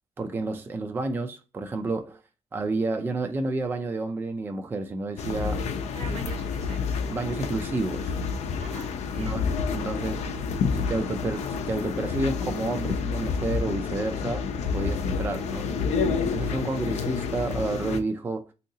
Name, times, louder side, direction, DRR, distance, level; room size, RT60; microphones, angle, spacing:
voice 1, 0.2-2.2 2.5-5.6 6.1-6.2 7.1-8.2 9.1-10.4 10.7-14.4 14.7-15.6 16.2-18.5, right 3 dB, 20° right, 0.3 m, -30 dB
sound 1, 5.2-18.0, left 5 dB, 85° left, 0.5 m, -29 dB
voice 2, 5.9-7.0 8.6-9.4 16.4-16.8, right 4 dB, 80° right, 1.2 m, -45 dB
3.7 x 2.8 x 2.6 m
wide cardioid pair, 160°, 11 cm